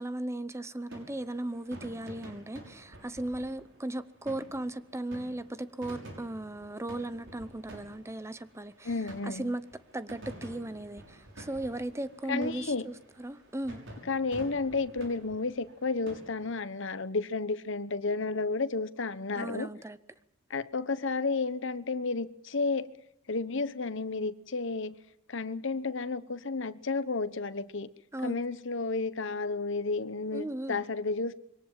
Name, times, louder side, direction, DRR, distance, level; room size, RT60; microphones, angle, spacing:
voice 1, 0.0-8.9 9.2-9.6 9.9-13.8 19.4-20.0 28.1-28.4 30.3-30.8, right 1 dB, 15° right, 0.8 m, -37 dB
sound 1, 0.9-16.6, right 1 dB, 60° right, 6.2 m, -50 dB
voice 2, 8.8-9.5 12.3-12.8 14.0-19.7 20.5-22.9 23.3-24.9 25.3-27.9 28.2-31.3, left 3 dB, 60° left, 1.1 m, -32 dB
23.5 x 18.5 x 7.4 m
head